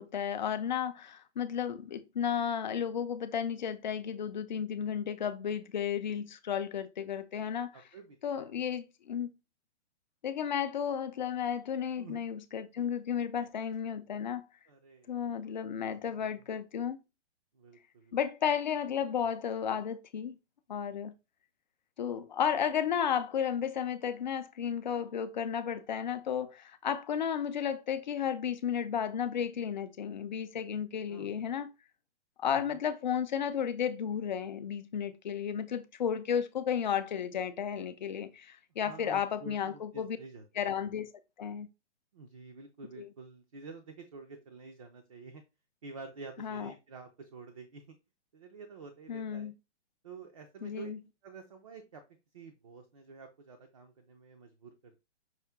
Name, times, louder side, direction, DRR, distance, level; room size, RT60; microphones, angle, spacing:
voice 1, 0.0-7.7 8.2-9.3 10.2-14.4 15.1-17.0 18.1-20.4 20.7-21.1 22.0-31.7 32.4-40.2 40.6-41.1 41.4-41.7 43.0-43.1 46.4-46.7 49.1-49.5 50.6-51.0, left 8 dB, 40° left, 0.5 m, -33 dB
voice 2, 7.7-8.5 12.0-12.2 12.7-12.8 14.7-15.5 16.2-16.4 17.5-18.2 31.1-31.4 32.5-32.8 38.8-40.7 42.1-45.4 45.8-48.0 48.3-49.5 50.0-50.9 51.2-52.0 52.3-55.0, right 4 dB, 30° right, 0.5 m, -49 dB
5.7 x 2.6 x 3.6 m
hypercardioid pair, 165°, 35 cm